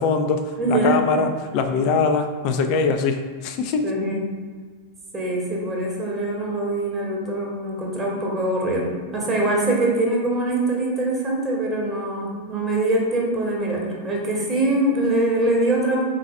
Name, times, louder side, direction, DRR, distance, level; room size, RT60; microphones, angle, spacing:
voice 1, 0.0-3.9, left 4 dB, 45° left, 6 dB, 0.4 m, -22 dB
voice 2, 0.6-1.0 3.8-4.2 5.1-16.0, right 2 dB, 20° right, -3 dB, 1.0 m, -23 dB
3.9 x 2.6 x 4.2 m, 1.5 s
figure-of-eight pair, 90°, 0 cm